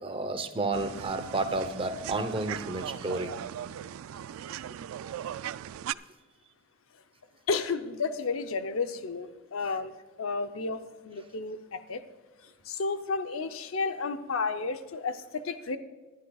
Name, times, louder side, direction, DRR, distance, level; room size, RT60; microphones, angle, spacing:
voice 1, 0.0-3.3 4.6-4.7 5.0-5.1, right 2 dB, 25° right, 9 dB, 0.8 m, -31 dB
sound 1, 0.7-5.9, right 10 dB, 80° right, 0.3 m, -39 dB
voice 2, 7.5-9.9 10.2-12.0 12.4-15.8, left 4 dB, 75° left, 9 dB, 0.7 m, -32 dB
19.5 x 11.5 x 2.4 m, 1.3 s
head